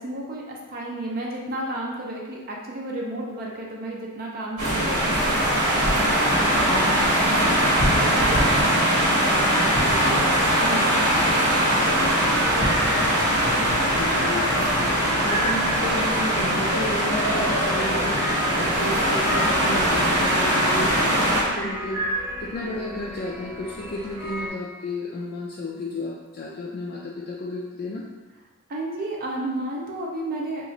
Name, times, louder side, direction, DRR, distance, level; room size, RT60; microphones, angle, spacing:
voice 1, 0.0-11.7 28.7-30.6, right 2 dB, 40° right, -2 dB, 0.5 m, -33 dB
sound 1, 4.6-21.4, equal, 85° right, 1.1 m, -21 dB
voice 2, 6.7-7.0 13.9-28.0, left 2 dB, 45° left, -4 dB, 0.3 m, -33 dB
sound 2, 11.9-24.5, equal, 10° right, 0.8 m, -33 dB
2.9 x 2.5 x 3.8 m, 1.3 s
head